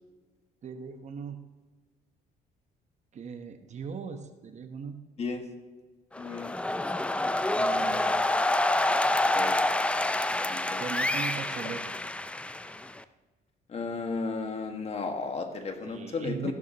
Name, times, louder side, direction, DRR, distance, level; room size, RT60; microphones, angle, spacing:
voice 1, 0.6-1.4 3.1-5.0 7.5-8.3 10.8-11.8 15.9-16.5, right 6 dB, 45° right, 7 dB, 1.0 m, -39 dB
sound 1, 6.1-13.0, left 1 dB, 5° left, 0.4 m, -27 dB
voice 2, 6.2-6.6 7.2-7.3 8.3-8.4 9.3-9.6 10.5-10.8 13.7-16.5, left 4 dB, 40° left, 5 dB, 1.6 m, -34 dB
15.0 x 12.0 x 2.9 m, 1.3 s
cardioid pair, 110°, 17 cm